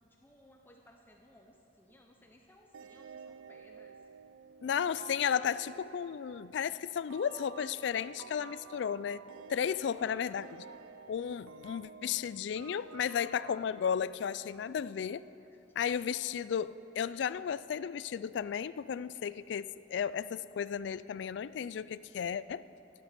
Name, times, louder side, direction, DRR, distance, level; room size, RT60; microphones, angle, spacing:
voice 1, 0.0-4.0 10.0-10.6, left 1 dB, 10° left, 1 dB, 0.8 m, -60 dB
sound 1, 2.7-15.1, right 6 dB, 90° right, 0.4 m, -52 dB
voice 2, 4.6-9.2 9.5-10.5 11.1-15.2 15.7-22.7, left 8 dB, 65° left, 17 dB, 0.3 m, -34 dB
13.0 x 11.0 x 5.9 m, 2.8 s
head